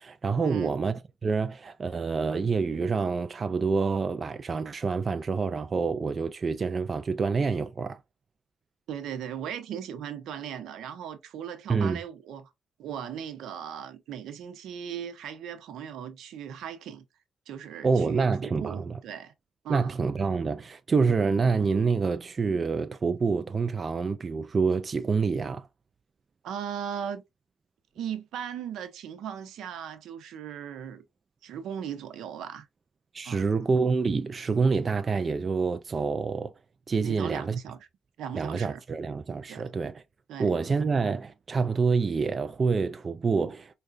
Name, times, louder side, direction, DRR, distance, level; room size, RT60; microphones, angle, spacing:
voice 1, 0.0-8.0 11.7-12.0 17.8-19.0 19.7-25.7 33.1-36.5 36.9-37.6 38.3-40.0 40.4-43.7, right 4 dB, 35° right, 0.3 m, -27 dB
voice 2, 8.9-12.5 12.8-17.0 17.5-18.3 18.6-19.3 19.6-19.9 26.4-27.2 28.0-31.0 31.4-32.7 33.2-33.4 37.0-37.8 38.2-38.8 39.5-39.7 40.3-40.5, right 8 dB, 80° right, 0.7 m, -37 dB
4.7 x 2.3 x 2.5 m
cardioid pair, 90°, 0 cm